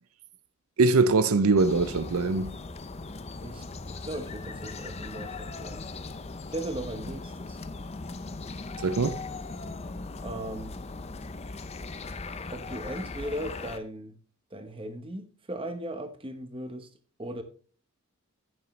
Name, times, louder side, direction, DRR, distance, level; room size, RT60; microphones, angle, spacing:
voice 1, 0.8-2.5 8.8-9.2, right 3 dB, 75° right, 0.6 m, -22 dB
sound 1, 1.6-13.8, left 3 dB, 30° left, 0.6 m, -39 dB
voice 2, 3.4-5.9 6.5-7.6 10.2-10.7 12.5-14.2 14.5-16.9 17.2-17.4, right 1 dB, 25° right, 1.0 m, -37 dB
11.0 x 8.6 x 3.2 m
head